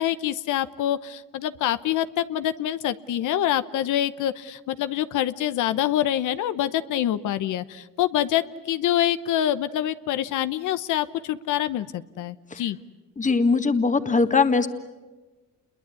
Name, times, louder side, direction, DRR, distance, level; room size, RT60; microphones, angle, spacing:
voice 1, 0.0-12.8, left 12 dB, 80° left, 13 dB, 1.0 m, -26 dB
voice 2, 13.2-14.7, left 4 dB, 25° left, 9 dB, 1.7 m, -20 dB
29.0 x 22.0 x 8.4 m, 1.2 s
cardioid pair, 90°, 30 cm